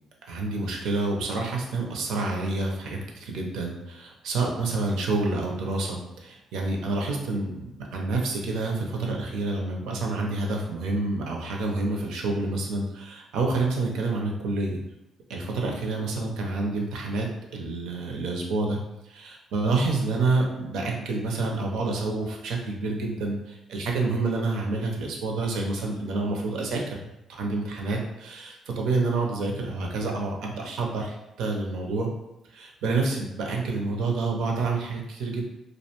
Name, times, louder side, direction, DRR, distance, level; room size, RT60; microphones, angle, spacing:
voice 1, 0.3-14.8 15.3-17.3 17.5-18.8 19.0-27.0 27.3-32.1 32.5-35.4, right 3 dB, 85° right, 0 dB, 0.5 m, -28 dB
2.4 x 2.1 x 2.9 m, 0.92 s
cardioid pair, 90°, 0 cm